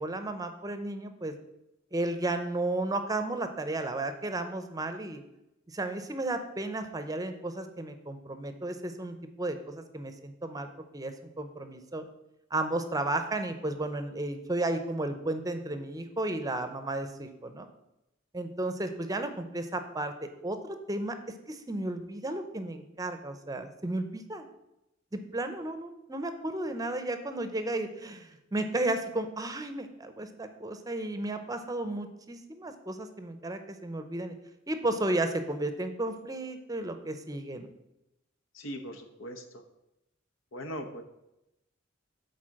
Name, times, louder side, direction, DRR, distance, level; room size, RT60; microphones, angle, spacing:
voice 1, 0.0-1.3 1.9-5.2 5.7-10.7 10.9-12.0 12.5-17.7 18.3-21.1 21.5-24.5 25.1-34.3 34.7-37.7, right 2 dB, 20° right, 8 dB, 0.6 m, -33 dB
voice 2, 38.6-39.4 40.5-41.0, equal, 80° left, 6 dB, 1.0 m, -39 dB
8.5 x 4.1 x 6.4 m, 0.89 s
head